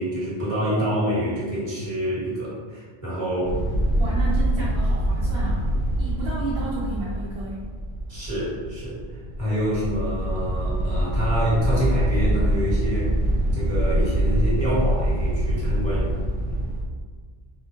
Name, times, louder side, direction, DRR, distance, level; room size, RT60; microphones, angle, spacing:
voice 1, 0.0-3.6 8.1-9.0 9.4-16.6, equal, 35° right, -7 dB, 1.3 m, -27 dB
sound 1, 3.4-16.8, right 1 dB, 60° right, 0.8 m, -24 dB
voice 2, 3.9-5.6 6.0-7.7, right 3 dB, 85° right, -6 dB, 1.0 m, -32 dB
3.8 x 3.6 x 2.7 m, 1.5 s
omnidirectional pair, 1.0 m